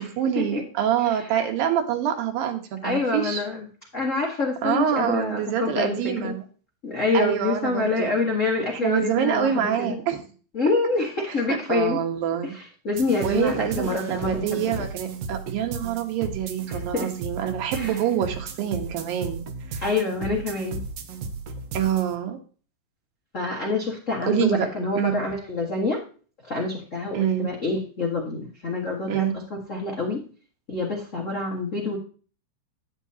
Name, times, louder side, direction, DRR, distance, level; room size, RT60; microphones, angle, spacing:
voice 1, 0.0-3.4 4.6-6.4 7.1-8.2 8.7-10.2 11.7-12.5 13.2-19.4 19.7-19.8 21.7-22.4 24.3-24.7 25.0-25.2 27.1-27.5 29.1-29.4, right 9 dB, 90° right, 4 dB, 2.9 m, -26 dB
voice 2, 2.8-3.7 3.9-6.3 6.8-10.0 10.5-12.0 12.4-14.7 16.7-17.1 17.7-18.0 19.8-20.8 23.3-26.0 26.5-29.3 29.7-30.2 30.7-32.0, left 3 dB, 80° left, -2 dB, 0.7 m, -26 dB
sound 1, 12.9-22.1, right 4 dB, 75° right, 1.5 m, -35 dB
9.8 x 8.9 x 2.8 m, 0.39 s
omnidirectional pair, 3.9 m